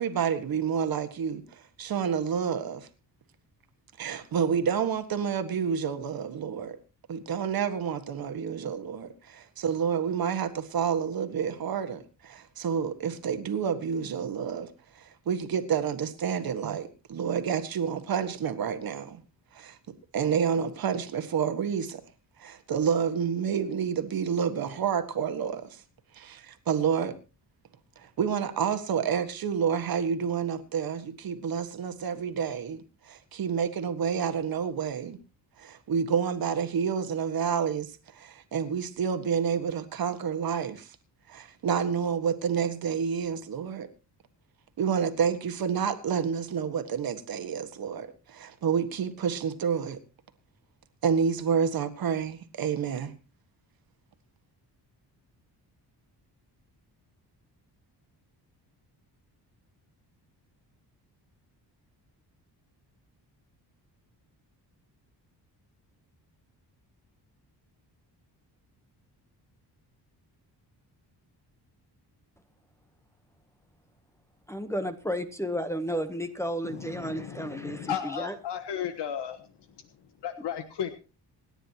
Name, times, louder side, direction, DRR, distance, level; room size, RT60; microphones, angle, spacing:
voice 1, 0.0-2.9 4.0-6.8 7.1-19.2 19.5-19.8 20.1-22.0 22.4-25.8 26.1-27.1 28.0-35.2 35.6-40.9 41.3-43.9 44.8-50.0 51.0-53.1, right 7 dB, 60° right, 1.6 m, -29 dB
voice 2, 74.5-78.4, equal, 5° left, 0.9 m, -32 dB
voice 3, 76.6-79.4 80.2-80.9, left 9 dB, 85° left, 1.3 m, -34 dB
27.0 x 10.0 x 2.9 m
wide cardioid pair, 155°, 41 cm